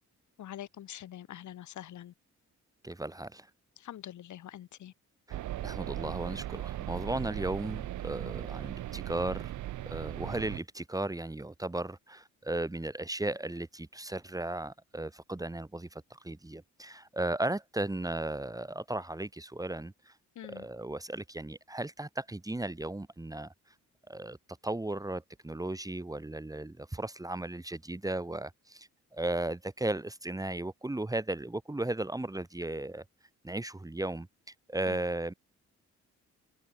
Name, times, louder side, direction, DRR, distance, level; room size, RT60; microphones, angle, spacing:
voice 1, 0.4-2.1 3.8-4.9 20.4-20.7 34.9-35.0, left 11 dB, 70° left, 5.5 m, -45 dB
voice 2, 2.8-3.5 5.3-5.4 5.6-9.5 9.9-20.1 20.5-23.5 24.1-24.4 24.6-33.0 33.4-34.3 34.7-35.3, right 2 dB, 10° right, 2.2 m, -35 dB
sound 1, 5.3-10.6, right 14 dB, 75° right, 1.4 m, -38 dB
cardioid pair, 90°, 30 cm